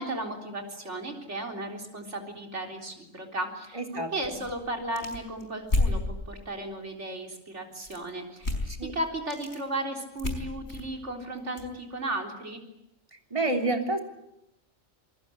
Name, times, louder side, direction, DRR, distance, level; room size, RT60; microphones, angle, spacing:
voice 1, 0.0-8.5 8.9-12.6, right 1 dB, 65° right, 3 dB, 4.2 m, -35 dB
voice 2, 3.7-4.4 8.7-8.9 13.3-14.0, right 2 dB, 25° right, 4 dB, 3.4 m, -29 dB
sound 1, 4.2-6.0 7.8-8.1 8.4-8.8 9.1-9.6 10.2-11.7, left 2 dB, 55° left, 5.0 m, -30 dB
28.0 x 20.0 x 8.6 m, 0.85 s
omnidirectional pair, 1.3 m